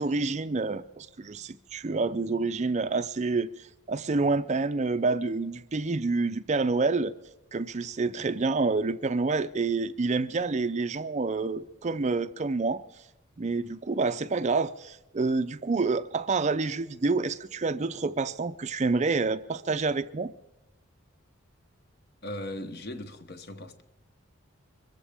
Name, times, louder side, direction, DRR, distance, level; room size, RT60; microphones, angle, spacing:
voice 1, 0.0-7.1 7.5-12.8 13.4-20.3, right 3 dB, 30° right, 0.4 m, -28 dB
voice 2, 22.2-23.9, left 1 dB, 50° left, 1.1 m, -38 dB
24.0 x 14.5 x 3.5 m
head